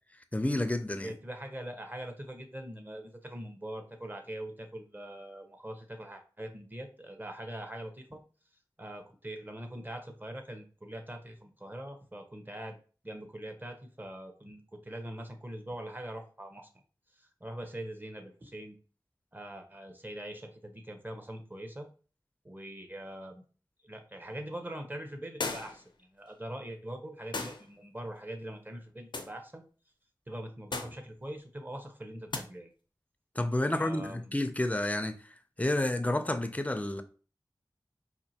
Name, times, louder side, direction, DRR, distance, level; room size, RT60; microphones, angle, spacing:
voice 1, 0.3-1.1 33.4-35.2 35.6-37.0, left 1 dB, 20° left, 0.4 m, -30 dB
voice 2, 1.0-8.2 8.8-12.8 13.0-16.7 17.2-18.8 19.3-21.9 22.4-23.4 23.8-29.6 30.3-32.7 33.7-34.4, right 1 dB, 25° right, 0.7 m, -42 dB
sound 1, 25.4-25.9 27.3-27.7 29.1-29.4 30.7-31.0 32.3-32.5, left 3 dB, 80° left, 0.4 m, -36 dB
4.3 x 2.5 x 2.8 m
wide cardioid pair, 60°, 8 cm